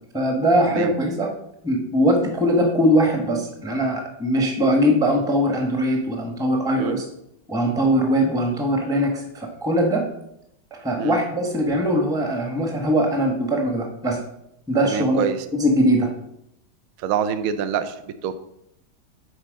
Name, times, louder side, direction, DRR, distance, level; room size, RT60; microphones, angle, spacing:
voice 1, 0.1-1.3 1.6-7.0 7.5-10.1 10.8-14.2 14.7-15.3 15.6-16.1, equal, 5° right, 2 dB, 0.8 m, -21 dB
voice 2, 14.8-15.4 17.0-18.3, right 8 dB, 65° right, 10 dB, 0.8 m, -26 dB
8.3 x 4.4 x 5.3 m, 0.78 s
omnidirectional pair, 2.1 m